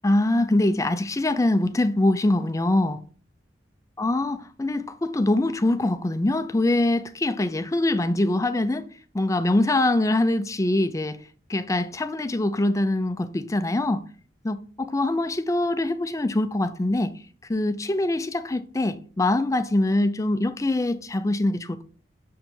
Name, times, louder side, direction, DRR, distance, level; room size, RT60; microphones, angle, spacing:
voice 1, 0.0-3.0 4.0-8.9 9.1-11.2 11.5-14.0 14.4-17.1 17.5-21.8, left 2 dB, 20° left, 0.5 m, -23 dB
6.6 x 4.9 x 3.7 m
head